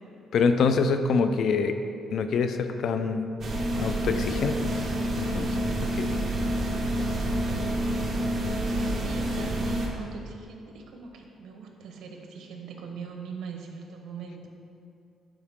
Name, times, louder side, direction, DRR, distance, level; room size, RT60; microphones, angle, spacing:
voice 1, 0.3-1.7 2.1-3.3 3.8-4.7 5.2-5.6 6.0-6.1, left 5 dB, 65° left, 9 dB, 0.5 m, -25 dB
voice 2, 1.3-1.7 8.5-14.5, right 5 dB, 75° right, 2 dB, 1.0 m, -41 dB
sound 1, 3.4-9.9, right 1 dB, 45° right, 1.3 m, -28 dB
11.0 x 4.7 x 3.6 m, 2.5 s
cardioid pair, 90°, 0 cm